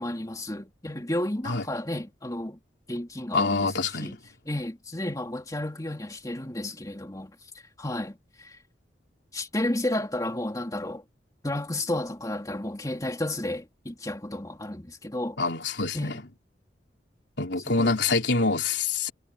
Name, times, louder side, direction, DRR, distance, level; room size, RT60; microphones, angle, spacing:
voice 1, 0.0-2.6 2.9-4.2 4.5-7.3 7.8-8.6 9.3-11.0 11.4-15.4 15.9-16.2 17.7-17.9, left 1 dB, 20° left, 2.7 m, -32 dB
voice 2, 3.3-4.1 15.4-16.1 17.4-19.1, left 3 dB, 75° left, 3.6 m, -25 dB
head